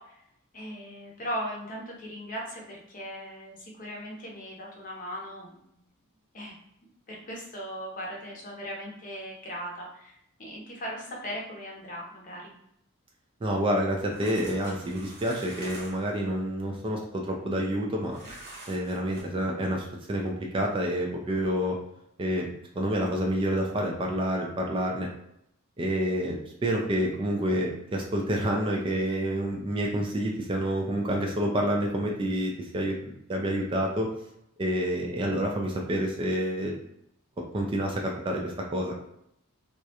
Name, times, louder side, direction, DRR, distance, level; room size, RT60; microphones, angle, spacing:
voice 1, 0.5-5.6 6.3-6.6 7.1-10.1 10.4-12.5, equal, 40° left, -2 dB, 0.7 m, -38 dB
voice 2, 13.4-18.2 18.7-21.8 22.2-22.5 22.7-25.1 25.8-34.1 34.6-36.7 37.5-39.0, equal, 25° right, 0 dB, 0.3 m, -28 dB
sound 1, 13.9-16.1 18.1-19.2, right 1 dB, 50° right, 0.8 m, -45 dB
2.3 x 2.0 x 2.8 m, 0.76 s
head